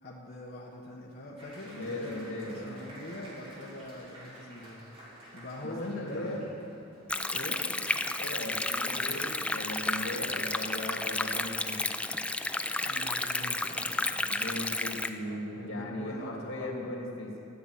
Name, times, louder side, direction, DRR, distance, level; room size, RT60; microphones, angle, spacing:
voice 1, 0.0-4.9 5.3-6.4 7.3-7.6 12.8-14.2 15.2-16.9, left 1 dB, 50° left, -4 dB, 1.5 m, -43 dB
Applause, 1.4-7.1, equal, 30° right, 3.2 m, -51 dB
voice 2, 1.7-2.9 5.6-6.4 8.2-11.8 14.3-17.3, left 1 dB, 85° left, -1 dB, 2.6 m, -38 dB
Stream, 7.1-15.1, left 2 dB, 5° left, 0.4 m, -32 dB
13.5 x 7.1 x 9.7 m, 2.8 s
head